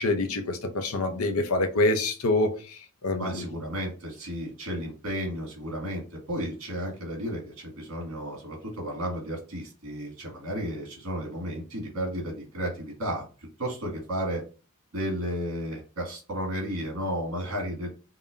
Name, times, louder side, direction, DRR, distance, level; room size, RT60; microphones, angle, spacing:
voice 1, 0.0-3.5, left 2 dB, 75° left, 0.7 m, -26 dB
voice 2, 3.2-13.3 13.6-14.4 14.9-17.9, equal, 65° right, 1.8 m, -33 dB
5.4 x 2.2 x 2.5 m
head